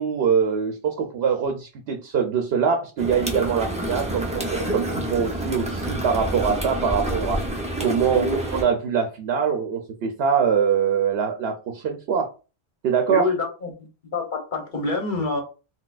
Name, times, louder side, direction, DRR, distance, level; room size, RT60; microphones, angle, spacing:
voice 1, 0.0-12.3 12.8-13.3, right 6 dB, 80° right, 3 dB, 0.8 m, -23 dB
sound 1, 3.0-8.6, right 1 dB, 10° right, 0.4 m, -28 dB
voice 2, 13.1-13.7 14.1-15.4, left 3 dB, 55° left, 2 dB, 1.0 m, -26 dB
3.9 x 2.1 x 2.4 m, 0.33 s
omnidirectional pair, 1.0 m